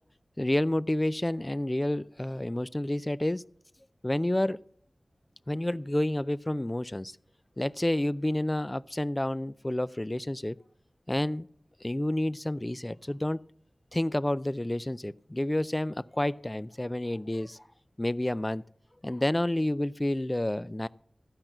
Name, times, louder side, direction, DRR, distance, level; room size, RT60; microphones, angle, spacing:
voice 1, 0.4-3.4 4.0-4.6 5.5-7.1 7.6-10.6 11.1-11.5 11.8-13.4 13.9-17.6 18.0-18.6 19.0-20.9, left 1 dB, 25° left, 17 dB, 0.4 m, -29 dB
14.5 x 5.9 x 7.8 m, 0.62 s
wide cardioid pair, 60°, 0 cm